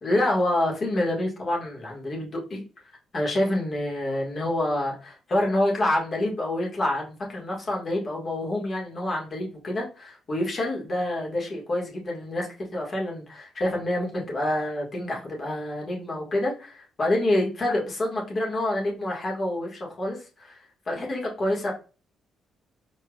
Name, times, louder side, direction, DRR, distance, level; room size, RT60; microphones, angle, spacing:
voice 1, 0.0-2.6 3.1-20.6 20.9-21.7, left 1 dB, 40° left, -1 dB, 1.9 m, -27 dB
4.8 x 4.3 x 2.4 m, 0.34 s
cardioid pair, 90°, 0 cm